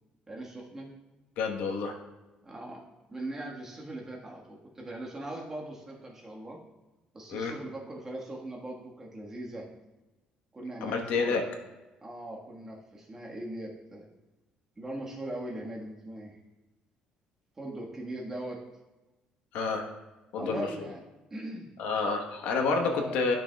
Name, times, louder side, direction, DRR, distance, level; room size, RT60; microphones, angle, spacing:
voice 1, 0.3-0.9 2.4-2.8 3.1-6.6 7.1-9.7 10.5-11.5 12.0-14.1 14.8-16.4 17.6-18.6 20.4-21.0 21.3-21.7 22.7-23.2, right 1 dB, 20° right, -2 dB, 1.5 m, -40 dB
voice 2, 1.4-1.9 7.3-7.5 10.8-11.4 19.5-19.9 20.3-20.7 21.8-23.4, left 4 dB, 80° left, 3 dB, 1.1 m, -29 dB
13.5 x 6.1 x 2.3 m, 1.1 s
cardioid pair, 145°, 3 cm